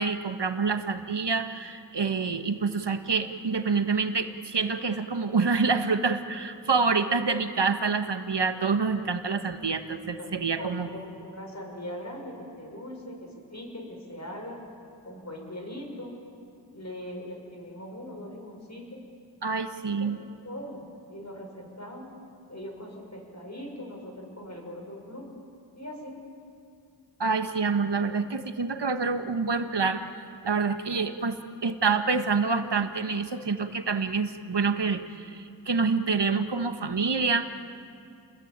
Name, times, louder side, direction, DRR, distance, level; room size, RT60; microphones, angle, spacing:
voice 1, 0.0-10.9 19.4-20.2 27.2-30.0 30.4-31.3 31.6-37.5, right 4 dB, 70° right, 7 dB, 1.5 m, -27 dB
voice 2, 10.2-14.6 15.0-16.2 16.7-19.0 20.0-20.2 20.4-20.8 21.1-22.1 22.5-25.3 25.8-26.2, left 1 dB, 40° left, 1 dB, 6.5 m, -41 dB
30.0 x 21.0 x 9.0 m, 2.4 s
wide cardioid pair, 50°, 42 cm